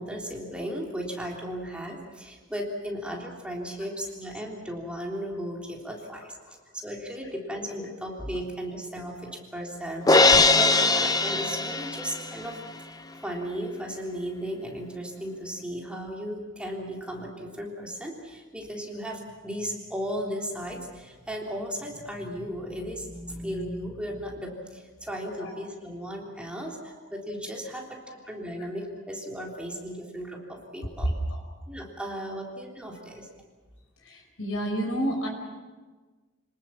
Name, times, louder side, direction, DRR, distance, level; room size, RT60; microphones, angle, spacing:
voice 1, 0.0-12.6 13.1-28.0 28.3-31.1 31.7-33.3, equal, 5° right, -1 dB, 3.5 m, -36 dB
Crash cymbal, 10.1-12.3, left 3 dB, 20° left, 0.8 m, -20 dB
voice 2, 31.0-31.4 34.0-35.3, right 1 dB, 70° left, 1 dB, 5.4 m, -29 dB
28.5 x 19.5 x 7.3 m, 1.3 s
head